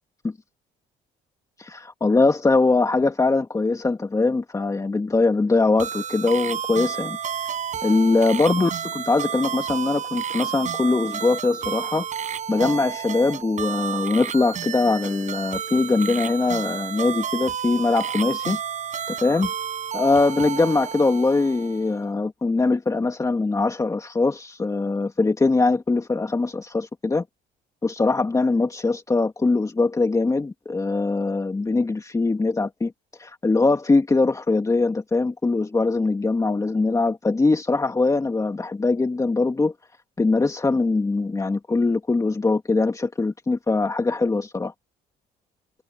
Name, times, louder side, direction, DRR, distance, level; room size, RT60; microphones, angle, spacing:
voice 1, 1.6-7.2 7.8-12.0 12.5-18.6 19.1-19.5 19.9-27.2 27.8-32.9 33.2-39.7 40.2-44.7, left 3 dB, 20° left, 2.6 m, -22 dB
sound 1, 5.8-22.0, right 8 dB, 45° right, 6.6 m, -31 dB
cardioid pair, 110°, 17 cm